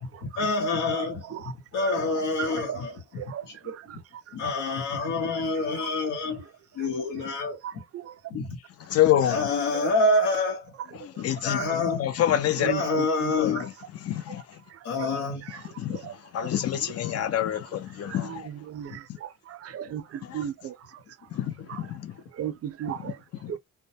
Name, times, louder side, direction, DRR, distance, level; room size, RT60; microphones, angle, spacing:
voice 1, 0.2-1.4 1.7-3.0 3.4-3.7 4.3-6.4 6.8-7.6 8.3-8.6 9.3-10.7 11.4-12.0 12.6-13.7 14.8-15.5, left 2 dB, 80° left, 0.9 m, -27 dB
voice 2, 1.3-2.0 2.4-2.8 3.2-4.0 4.4-5.4 5.8-5.9 6.3-6.4 7.6-8.3 9.7-9.9 11.6-11.8 12.6-13.6 14.7-15.2 15.4-15.6 15.9-16.5 18.0-21.0 21.7-21.9 22.3-23.2 23.5-23.6, right 10 dB, 55° right, 0.5 m, -37 dB
voice 3, 8.8-9.4 11.0-12.8 13.4-14.6 15.8-18.5 20.2-20.4 21.3-22.2 23.0-23.1 23.4-23.6, left 11 dB, 55° left, 0.5 m, -27 dB
2.2 x 2.1 x 2.7 m
cardioid pair, 90°, 30 cm